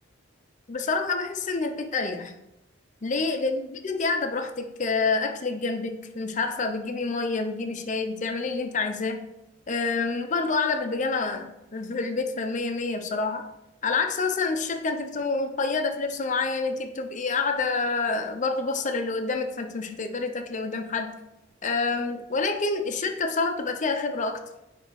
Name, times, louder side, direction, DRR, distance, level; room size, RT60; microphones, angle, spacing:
voice 1, 0.7-2.3 3.0-9.3 9.7-13.5 13.8-21.1 21.6-24.4, left 4 dB, 40° left, 6 dB, 0.6 m, -28 dB
9.8 x 3.5 x 3.2 m, 0.88 s
head